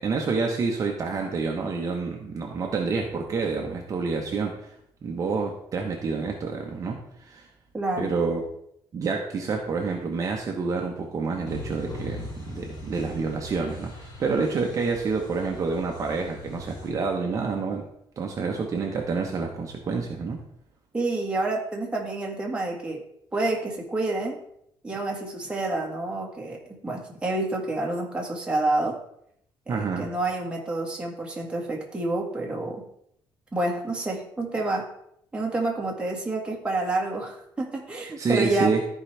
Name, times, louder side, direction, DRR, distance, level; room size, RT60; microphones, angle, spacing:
voice 1, 0.0-4.7 5.0-7.5 8.0-8.4 8.9-17.8 18.2-20.4 29.7-30.1 38.2-38.8, right 4 dB, 40° right, 1 dB, 1.2 m, -28 dB
voice 2, 7.7-8.1 20.9-23.0 23.3-24.4 24.8-29.0 29.7-32.8 33.5-34.9 35.3-38.8, right 2 dB, 10° right, -2 dB, 1.8 m, -28 dB
sound 1, 11.5-16.9, left 1 dB, 50° left, 4.0 m, -40 dB
14.0 x 4.9 x 3.4 m, 0.72 s
cardioid pair, 135°, 8 cm